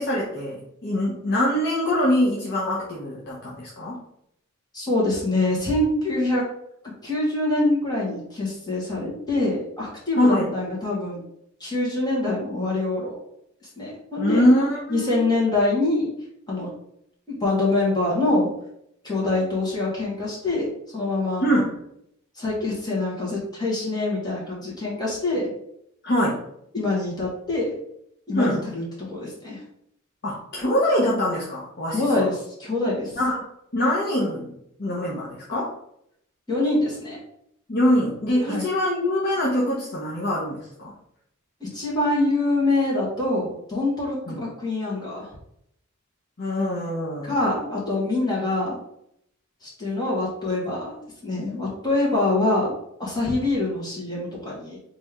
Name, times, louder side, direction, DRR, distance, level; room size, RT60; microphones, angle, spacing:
voice 1, 0.0-4.0 10.2-10.6 14.2-15.2 21.4-21.8 26.0-26.4 28.3-28.6 30.2-32.3 33.2-33.5 33.7-35.7 37.7-40.9 44.3-44.4 46.4-47.3, left 1 dB, 50° left, -5 dB, 0.9 m, -23 dB
voice 2, 4.7-6.4 7.0-11.2 11.6-13.2 13.8-14.5 14.9-16.1 16.5-16.7 17.3-18.5 19.0-20.7 20.9-21.4 22.4-25.5 26.7-27.7 28.3-29.6 31.9-33.1 36.5-37.2 38.4-38.6 41.6-45.3 47.2-48.8 49.6-52.7 53.0-54.8, left 2 dB, 20° left, -5 dB, 1.8 m, -25 dB
4.2 x 3.3 x 3.6 m, 0.74 s
head